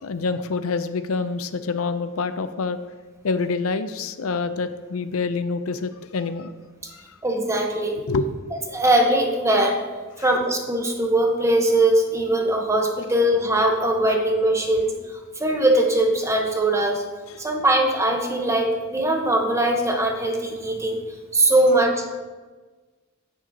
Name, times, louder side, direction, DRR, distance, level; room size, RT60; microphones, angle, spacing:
voice 1, 0.0-2.8 3.2-6.5 8.1-8.6 17.3-17.4, left 4 dB, 80° left, 11 dB, 0.5 m, -26 dB
voice 2, 7.2-8.0 8.5-9.8 10.2-14.9 15.4-17.0 17.4-21.0 21.3-22.1, right 1 dB, 15° right, 2 dB, 1.0 m, -21 dB
10.0 x 8.9 x 2.8 m, 1.3 s
head